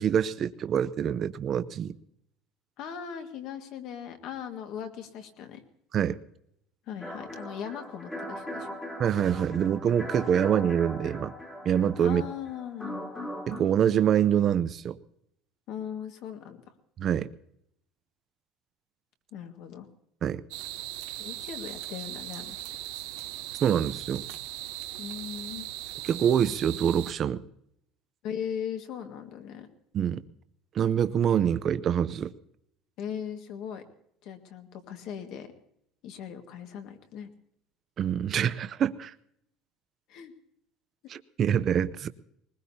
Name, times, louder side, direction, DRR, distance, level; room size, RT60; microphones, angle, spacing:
voice 1, 0.0-1.9 5.9-6.2 9.0-11.3 11.6-12.2 13.5-15.0 17.0-17.3 20.2-20.4 23.6-24.2 26.0-27.4 29.9-30.2 30.7-32.3 38.0-39.1 41.1-42.1, right 9 dB, 30° right, 13 dB, 0.6 m, -25 dB
voice 2, 2.8-5.6 6.9-8.8 12.0-13.1 15.7-16.7 19.3-19.9 21.2-22.6 25.0-25.7 28.2-29.7 33.0-33.8 34.2-35.5 36.0-37.3 40.1-40.3, left 8 dB, 50° left, 6 dB, 1.7 m, -39 dB
sound 1, 7.0-13.6, equal, 5° left, 1.8 m, -39 dB
sound 2, 20.5-27.1, right 15 dB, 75° right, 0.9 m, -39 dB
21.0 x 20.0 x 2.8 m, 0.73 s
cardioid pair, 160°, 0 cm